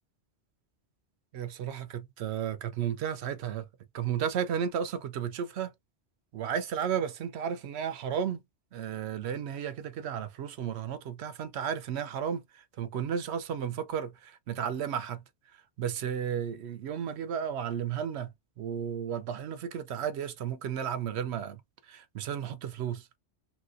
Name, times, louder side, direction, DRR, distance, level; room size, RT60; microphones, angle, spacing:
voice 1, 1.3-3.7 3.9-5.7 6.3-8.4 8.7-15.2 15.5-23.1, right 8 dB, 70° right, 0.8 m, -33 dB
3.0 x 2.9 x 2.5 m
omnidirectional pair, 1.2 m